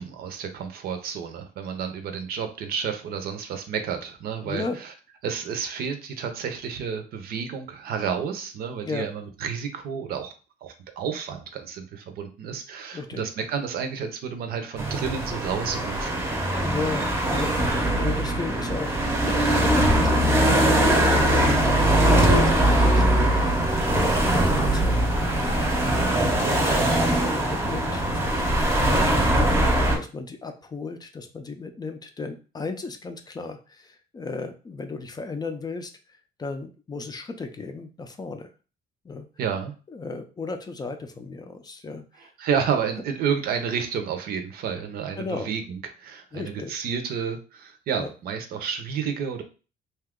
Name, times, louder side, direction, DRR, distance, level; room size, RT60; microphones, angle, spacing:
voice 1, 0.0-4.9 5.2-10.3 10.6-16.2 25.8-26.2 39.4-39.7 42.4-49.4, right 7 dB, 65° right, 7 dB, 0.6 m, -30 dB
voice 2, 4.5-4.8 8.8-9.1 12.9-13.2 16.6-19.0 19.3-25.0 26.4-35.9 36.4-38.5 39.0-39.3 39.9-42.0 45.2-45.5 46.3-46.7 48.0-48.1, left 4 dB, 25° left, 6 dB, 0.4 m, -35 dB
sound 1, 14.8-30.0, right 1 dB, 15° right, 0.7 m, -21 dB
2.8 x 2.3 x 3.6 m, 0.35 s
cardioid pair, 110°, 17 cm